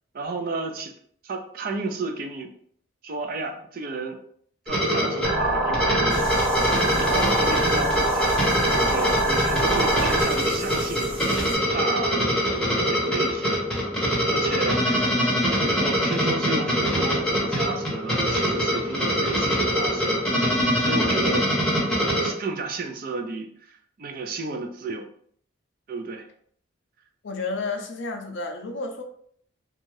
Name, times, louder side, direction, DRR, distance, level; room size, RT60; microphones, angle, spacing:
voice 1, 0.1-0.9 1.2-2.5 3.0-4.2 4.7-8.4 8.7-12.2 12.9-13.7 14.2-15.3 15.6-20.2 20.8-21.5 22.2-25.0 25.9-26.3, right 3 dB, 45° right, 0.4 m, -32 dB
sound 1, 4.7-22.3, equal, 5° left, 0.7 m, -24 dB
sound 2, 5.2-10.2, right 2 dB, 90° right, 1.0 m, -24 dB
sound 3, 6.1-11.6, right 1 dB, 25° right, 1.1 m, -38 dB
voice 2, 27.2-29.0, left 3 dB, 65° left, 0.5 m, -31 dB
2.6 x 2.3 x 3.1 m
head